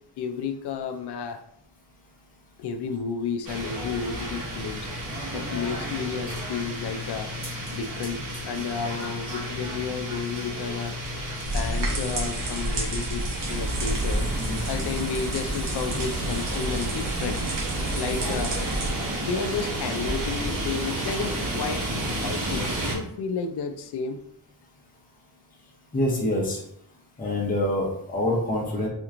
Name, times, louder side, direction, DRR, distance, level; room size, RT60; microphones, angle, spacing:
voice 1, 0.2-1.4 2.6-4.9 5.3-7.3 7.7-11.0 11.5-13.2 13.5-14.3 14.7-17.5 17.9-18.6 19.2-21.9 22.2-24.2, left 5 dB, 70° left, 6 dB, 0.5 m, -32 dB
sound 1, 3.4-22.9, right 1 dB, 50° right, 1.0 m, -32 dB
sound 2, 11.4-18.9, right 1 dB, 85° right, 1.2 m, -30 dB
voice 2, 25.9-26.6 27.2-28.9, left 1 dB, 20° left, -3 dB, 0.7 m, -25 dB
4.3 x 2.9 x 2.5 m, 0.71 s
wide cardioid pair, 165°, 42 cm